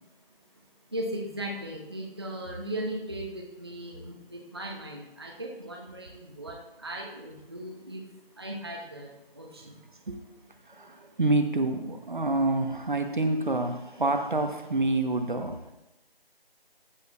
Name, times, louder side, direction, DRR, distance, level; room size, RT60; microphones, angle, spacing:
voice 1, 0.9-8.0 8.3-9.8, right 1 dB, 25° right, -1 dB, 0.8 m, -37 dB
voice 2, 10.7-15.6, right 2 dB, 55° right, 6 dB, 1.0 m, -27 dB
14.0 x 7.5 x 2.4 m, 0.93 s
figure-of-eight pair, 170°, 30 cm